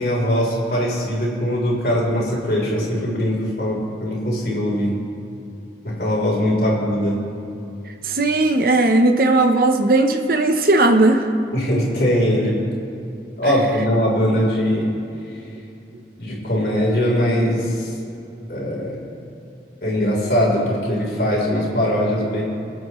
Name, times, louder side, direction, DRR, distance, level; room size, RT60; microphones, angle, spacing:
voice 1, 0.0-5.0 5.8-7.2 11.5-12.6 13.4-14.9 16.2-17.9 18.5-19.0 19.8-22.4, equal, 60° left, -4 dB, 3.7 m, -21 dB
voice 2, 8.0-11.3, right 2 dB, 55° right, 5 dB, 0.8 m, -17 dB
27.0 x 9.2 x 3.1 m, 2.7 s
head